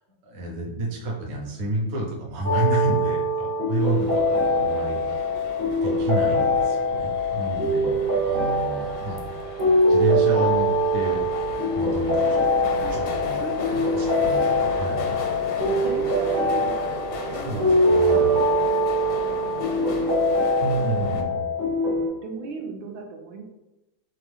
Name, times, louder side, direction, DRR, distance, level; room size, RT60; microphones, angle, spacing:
voice 1, 0.3-5.3 5.8-9.2 9.6-12.4 12.9-13.4 13.7-15.2 17.4-18.4 20.6-21.4, right 2 dB, 50° right, -2 dB, 0.9 m, -30 dB
sound 1, 2.4-22.1, equal, 30° right, 0.4 m, -23 dB
sound 2, 3.8-21.2, left 4 dB, 80° left, 1.3 m, -35 dB
voice 2, 7.4-7.7 12.2-13.0 13.3-14.0 15.6-18.3 18.9-20.2 20.8-21.5 21.8-23.4, right 4 dB, 85° right, 2 dB, 1.4 m, -38 dB
3.5 x 3.4 x 3.5 m, 1.0 s
omnidirectional pair, 2.1 m